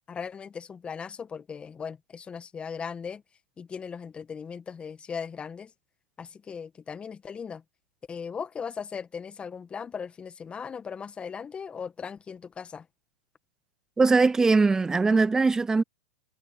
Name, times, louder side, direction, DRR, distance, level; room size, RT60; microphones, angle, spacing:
voice 1, 0.1-3.2 3.6-5.7 6.2-7.6 8.1-12.9, left 6 dB, 20° left, 1.9 m, -38 dB
voice 2, 14.0-15.8, right 4 dB, 10° right, 0.4 m, -21 dB
hypercardioid pair, 110°, 6 cm